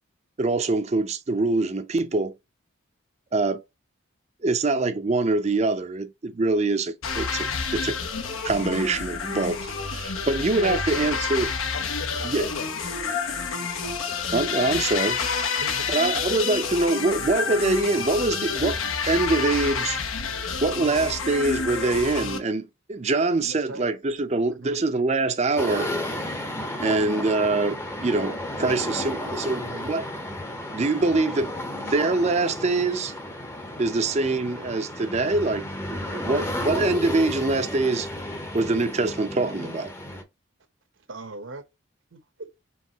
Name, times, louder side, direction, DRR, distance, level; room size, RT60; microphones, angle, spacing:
voice 1, 0.4-2.3 3.3-3.6 4.4-7.5 7.7-8.0 8.4-11.5 12.2-12.5 14.3-15.2 15.9-18.8 19.1-20.0 20.6-25.9 26.8-30.0 30.7-33.1 33.8-39.9, right 3 dB, 30° right, 0.5 m, -24 dB
sound 1, 7.0-22.4, left 5 dB, 80° left, 0.9 m, -29 dB
voice 2, 10.6-11.2 11.7-14.2, left 6 dB, 60° left, 0.4 m, -38 dB
voice 3, 15.6-16.6 23.4-23.9 24.4-24.8 26.8-27.2 29.6-29.9 41.0-41.6 42.1-42.5, right 2 dB, 70° right, 0.8 m, -40 dB
sound 2, 25.6-40.2, left 1 dB, 10° left, 0.7 m, -33 dB
4.7 x 3.2 x 2.8 m
head